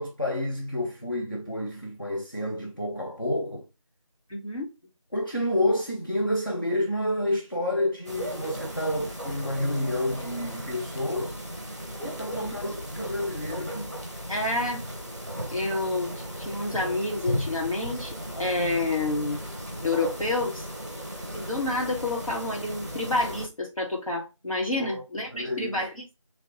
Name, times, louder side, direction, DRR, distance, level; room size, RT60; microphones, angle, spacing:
voice 1, 0.0-3.7 5.1-11.4 12.0-13.8 24.8-25.0 25.3-25.8, left 1 dB, 40° left, 0.5 m, -29 dB
voice 2, 4.3-4.7 12.3-12.5 13.7-13.8 14.3-14.8 15.5-19.4 19.8-20.7 21.3-25.9, left 2 dB, 85° left, 1.7 m, -29 dB
sound 1, 8.0-23.5, equal, 30° right, 0.6 m, -36 dB
2.9 x 2.8 x 2.9 m
figure-of-eight pair, 180°, 17 cm